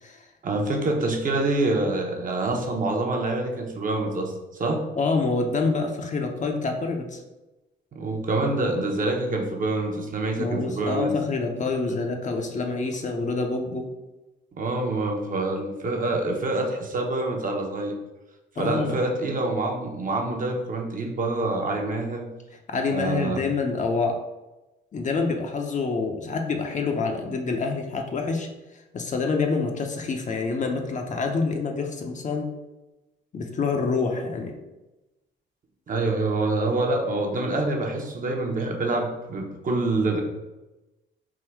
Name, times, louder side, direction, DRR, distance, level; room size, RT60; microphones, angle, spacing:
voice 1, 0.4-4.8 7.9-11.1 14.6-18.0 18.6-22.3 22.9-23.4 35.9-40.2, right 2 dB, 40° right, 1 dB, 0.9 m, -26 dB
voice 2, 5.0-7.2 10.4-13.9 18.6-19.0 22.7-24.2 24.9-32.5 33.3-34.6, left 4 dB, 40° left, 3 dB, 0.6 m, -27 dB
3.7 x 2.5 x 4.5 m, 1.0 s
cardioid pair, 90°, 20 cm